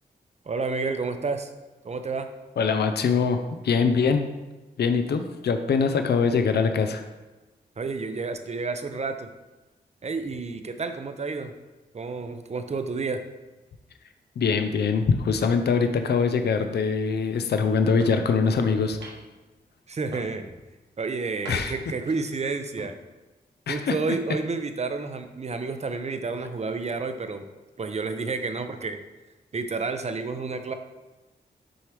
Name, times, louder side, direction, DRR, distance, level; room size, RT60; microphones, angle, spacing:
voice 1, 0.5-1.5 1.8-2.3 7.8-9.3 10.0-11.5 11.9-13.2 19.9-20.4 21.0-22.9 23.7-27.5 27.8-29.0 29.5-30.7, right 4 dB, 40° right, 8 dB, 0.6 m, -30 dB
voice 2, 2.6-4.3 4.8-7.0 14.4-19.0 21.5-21.7 23.7-23.9, left 5 dB, 70° left, 7 dB, 0.5 m, -23 dB
sound 1, 18.0-18.3 19.0-19.4 20.1-20.6 21.4-21.9 22.6-22.9, right 2 dB, 90° right, 1.0 m, -42 dB
6.3 x 4.5 x 3.3 m, 1.1 s
cardioid pair, 55°, 18 cm